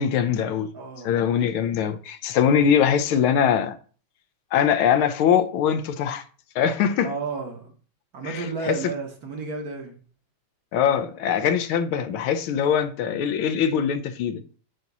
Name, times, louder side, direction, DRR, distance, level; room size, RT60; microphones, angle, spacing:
voice 1, 0.0-0.7 1.0-3.8 4.5-6.2 6.5-7.1 8.2-8.8 10.7-14.4, left 8 dB, 80° left, 1.5 m, -22 dB
voice 2, 0.7-1.2 7.0-7.7 8.1-10.0, right 4 dB, 50° right, 1.4 m, -32 dB
8.0 x 2.9 x 6.0 m
omnidirectional pair, 2.3 m